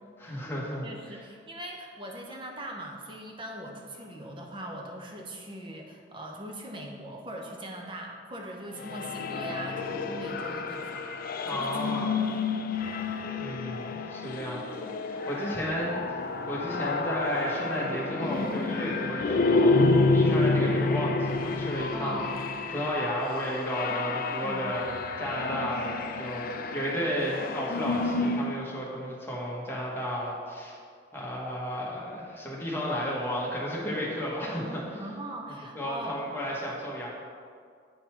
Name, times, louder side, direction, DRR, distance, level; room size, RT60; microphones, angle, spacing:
voice 1, 0.2-1.2 11.4-12.1 13.0-22.3 22.7-24.9 25.2-30.8 31.1-35.0 35.7-37.1, equal, 10° left, -5 dB, 1.3 m, -33 dB
voice 2, 0.8-11.1 11.5-12.1 15.7-15.8 20.5-20.8 21.9-22.3 23.9-24.7 35.0-36.1, right 1 dB, 25° right, 0 dB, 0.8 m, -41 dB
sound 1, 8.8-28.6, left 3 dB, 50° left, 0.4 m, -29 dB
8.8 x 3.9 x 4.5 m, 2.2 s
head